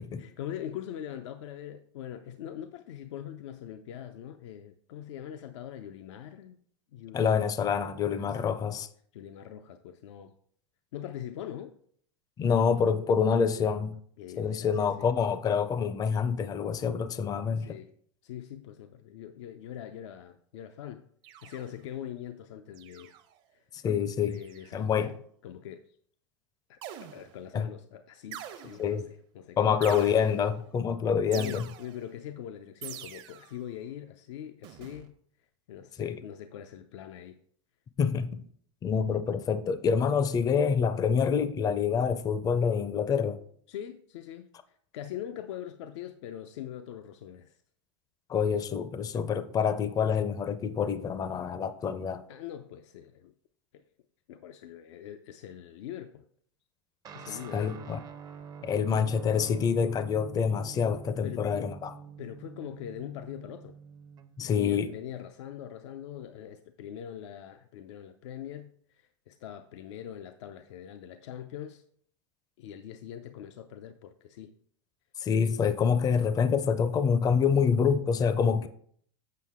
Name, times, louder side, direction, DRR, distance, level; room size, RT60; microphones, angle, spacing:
voice 1, 0.0-6.6 6.9-7.2 8.1-8.6 9.1-10.3 10.9-11.7 14.2-15.1 17.6-17.9 18.2-23.2 23.5-23.6 24.2-25.2 25.4-26.0 26.7-29.8 31.3-35.2 35.7-37.4 43.7-47.6 52.3-53.3 53.7-53.8 54.3-56.2 57.1-57.8 61.2-61.7 62.2-63.8 64.4-71.8 72.6-74.5, left 10 dB, 75° left, 0.5 m, -42 dB
voice 2, 7.1-8.9 12.4-14.0 14.4-17.8 23.8-24.4 24.7-25.1 27.5-27.7 28.8-29.0 29.6-31.7 36.0-36.2 38.0-38.4 38.8-43.4 48.3-52.2 57.5-58.0 58.6-61.9 64.4-64.9 75.2-78.7, left 6 dB, 25° left, 0.5 m, -26 dB
sound 1, 21.2-21.9 22.7-23.4 24.3-24.8 26.8-27.5 28.3-29.0 29.8-30.6 31.3-32.1 32.8-33.6 34.6-35.1, right 11 dB, 60° right, 0.9 m, -45 dB
Guitar, 57.0-64.7, right 6 dB, 25° right, 0.5 m, -47 dB
7.6 x 5.5 x 3.6 m
hypercardioid pair, 110°, 15 cm